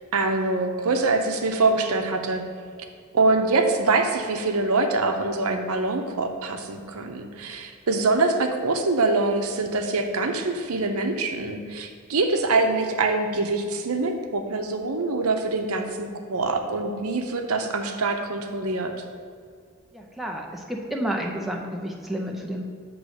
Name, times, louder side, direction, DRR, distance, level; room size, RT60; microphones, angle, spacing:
voice 1, 0.1-2.4 3.1-18.9, right 3 dB, 80° right, 4 dB, 0.7 m, -24 dB
voice 2, 19.9-22.7, right 1 dB, ahead, 0 dB, 0.5 m, -30 dB
8.0 x 3.1 x 6.3 m, 2.1 s
head